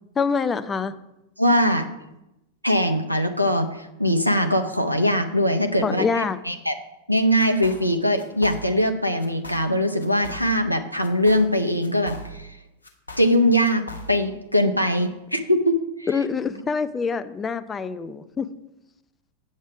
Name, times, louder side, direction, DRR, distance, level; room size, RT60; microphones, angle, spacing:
voice 1, 0.2-0.9 5.8-6.4 16.1-18.5, left 5 dB, 20° left, 11 dB, 0.5 m, -25 dB
voice 2, 1.4-1.9 2.6-6.7 7.1-12.5 13.2-16.1, equal, 90° right, 5 dB, 0.7 m, -22 dB
sound 1, 7.4-7.9 8.2-8.9 9.2-9.7 10.0-10.7 11.0-12.5 12.8-14.3, equal, 75° left, 1.2 m, -39 dB
8.7 x 7.3 x 4.8 m, 0.90 s
figure-of-eight pair, 90°, 0 cm